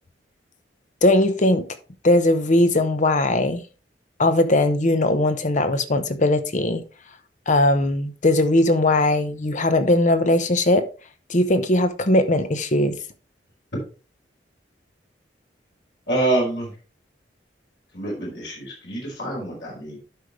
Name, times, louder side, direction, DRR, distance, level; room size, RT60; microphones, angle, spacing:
voice 1, 1.0-1.7 2.0-3.6 4.2-6.8 7.5-10.9 11.3-13.0, left 1 dB, 45° left, 0.9 m, -19 dB
voice 2, 16.1-16.7 17.9-20.0, right 2 dB, 70° left, 4.9 m, -26 dB
12.0 x 5.2 x 3.2 m
head